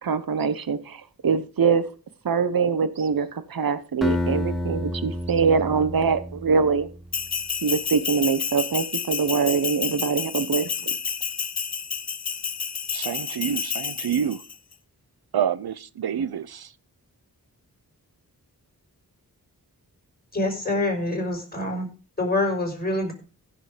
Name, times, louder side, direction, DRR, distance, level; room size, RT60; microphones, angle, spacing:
voice 1, 0.0-1.8 2.2-6.9 7.6-10.9, right 5 dB, 70° right, 1.1 m, -23 dB
Acoustic guitar, 4.0-7.0, left 1 dB, ahead, 2.2 m, -29 dB
Bell, 7.1-14.5, left 6 dB, 45° left, 0.8 m, -30 dB
voice 2, 12.9-14.4 15.3-16.7, right 8 dB, 90° right, 0.8 m, -27 dB
voice 3, 20.3-21.9 22.2-23.1, left 2 dB, 25° left, 5.6 m, -25 dB
15.5 x 7.0 x 5.1 m
wide cardioid pair, 90°, 37 cm